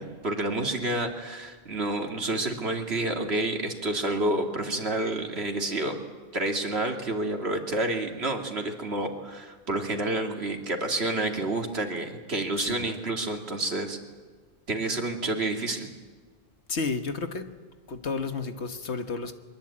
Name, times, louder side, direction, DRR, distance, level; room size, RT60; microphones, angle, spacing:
voice 1, 0.0-6.0 6.3-14.0 14.7-15.9, right 2 dB, 70° right, 3 dB, 2.8 m, -29 dB
voice 2, 16.7-17.5 17.9-19.3, left 4 dB, 90° left, 8 dB, 1.7 m, -31 dB
23.0 x 21.5 x 8.8 m, 1.4 s
omnidirectional pair, 1.1 m